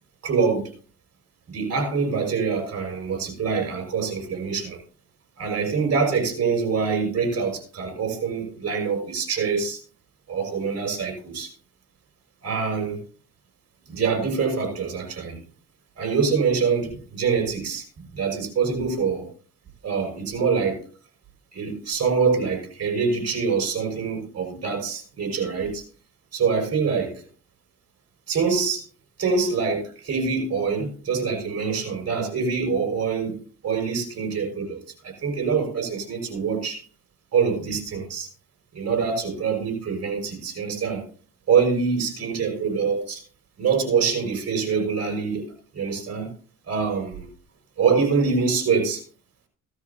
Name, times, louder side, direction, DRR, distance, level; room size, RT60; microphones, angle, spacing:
voice 1, 0.2-0.7 1.5-4.8 5.4-9.8 10.3-11.5 12.4-13.0 13.9-15.4 16.0-19.3 19.8-20.8 21.5-25.8 26.3-27.2 28.3-28.8 29.2-33.4 33.6-36.8 37.3-38.3 38.7-41.0 41.5-43.2 43.6-46.3 46.7-47.3 47.8-49.0, right 5 dB, 55° right, 4 dB, 5.7 m, -25 dB
17.0 x 13.0 x 2.8 m, 0.41 s
cardioid pair, 90°, 30 cm